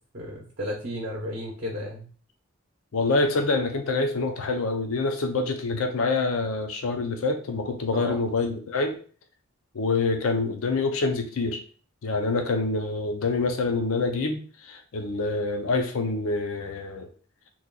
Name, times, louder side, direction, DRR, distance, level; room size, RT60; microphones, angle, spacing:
voice 1, 0.1-2.1 7.9-8.2, left 1 dB, 45° right, -2 dB, 0.7 m, -33 dB
voice 2, 2.9-9.0 9.7-11.6 12.0-17.1, left 3 dB, 70° left, 5 dB, 0.5 m, -26 dB
3.0 x 2.3 x 3.7 m, 0.41 s
head